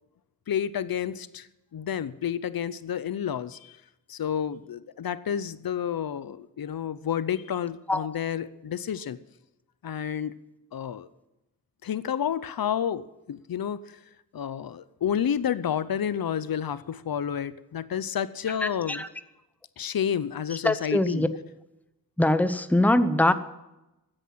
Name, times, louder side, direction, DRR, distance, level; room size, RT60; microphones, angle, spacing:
voice 1, 0.5-3.8 4.1-9.2 9.8-10.4 10.7-11.1 11.8-14.0 14.3-19.0 19.8-21.3, left 9 dB, 80° left, 16 dB, 0.7 m, -30 dB
voice 2, 20.6-21.3 22.2-23.3, left 1 dB, 5° left, 12 dB, 0.8 m, -22 dB
14.0 x 9.9 x 7.6 m, 0.93 s
wide cardioid pair, 120°, 35 cm